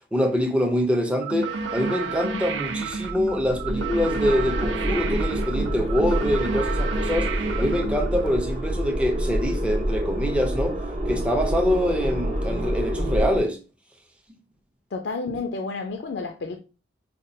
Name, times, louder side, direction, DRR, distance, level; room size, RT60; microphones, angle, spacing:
voice 1, 0.1-7.3 7.6-10.8 11.1-13.6, equal, 5° right, 0.5 m, -25 dB
sound 1, 1.2-8.3, right 5 dB, 70° right, 0.5 m, -31 dB
sound 2, 3.0-13.4, equal, 35° right, 0.8 m, -27 dB
voice 2, 14.9-16.6, left 3 dB, 65° left, 0.4 m, -31 dB
5.1 x 2.2 x 2.6 m
head